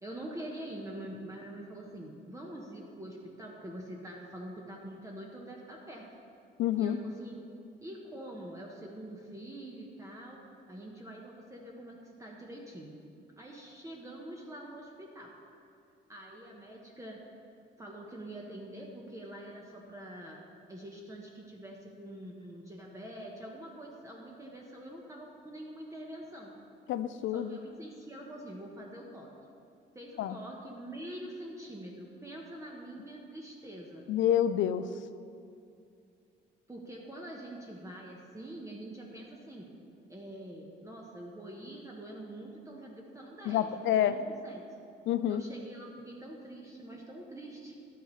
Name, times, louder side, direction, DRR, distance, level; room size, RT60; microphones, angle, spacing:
voice 1, 0.0-6.1 6.8-7.5 7.8-10.4 10.7-13.0 13.4-15.3 16.1-17.2 17.8-20.4 20.7-26.5 27.3-29.3 29.9-34.1 36.7-39.7 40.1-44.6 45.3-47.8, right 1 dB, 15° right, -2 dB, 1.0 m, -45 dB
voice 2, 6.6-7.0 26.9-27.6 30.2-30.4 34.1-34.9 43.5-44.2 45.1-45.4, left 10 dB, 75° left, 12 dB, 0.5 m, -28 dB
11.5 x 7.9 x 3.2 m, 2.4 s
cardioid pair, 90°, 20 cm